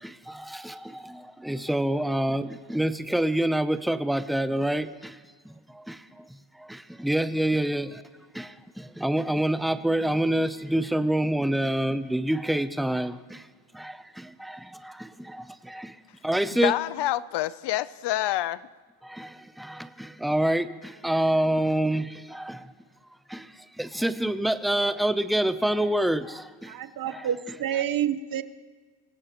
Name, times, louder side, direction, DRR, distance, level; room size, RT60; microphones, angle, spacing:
voice 1, 0.0-5.2 5.5-6.2 6.6-8.0 8.3-13.4 13.7-15.9 16.2-16.7 19.0-22.7 23.3-23.5 23.8-26.7 27.1-27.2, right 1 dB, ahead, 11 dB, 0.5 m, -27 dB
voice 2, 16.6-18.6, left 14 dB, 70° left, 17 dB, 0.6 m, -27 dB
voice 3, 26.7-28.4, right 10 dB, 50° right, 12 dB, 0.9 m, -28 dB
26.5 x 17.0 x 3.0 m, 1.5 s
cardioid pair, 120°, 43 cm